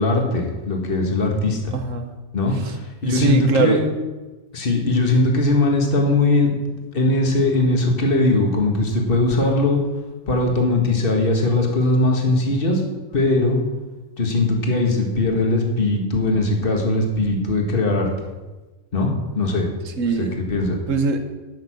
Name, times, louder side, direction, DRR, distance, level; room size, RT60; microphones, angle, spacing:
voice 1, 0.0-1.7 2.3-2.8 3.0-3.8 4.5-6.6 6.9-9.8 10.3-12.8 13.1-13.6 14.2-18.1 18.9-19.7 20.2-20.8, left 2 dB, 40° left, 1 dB, 1.9 m, -20 dB
voice 2, 1.7-2.1 2.5-2.7 3.0-3.9 19.9-20.4 20.9-21.2, right 4 dB, 65° right, 7 dB, 1.4 m, -22 dB
12.5 x 6.7 x 6.4 m, 1.2 s
omnidirectional pair, 1.4 m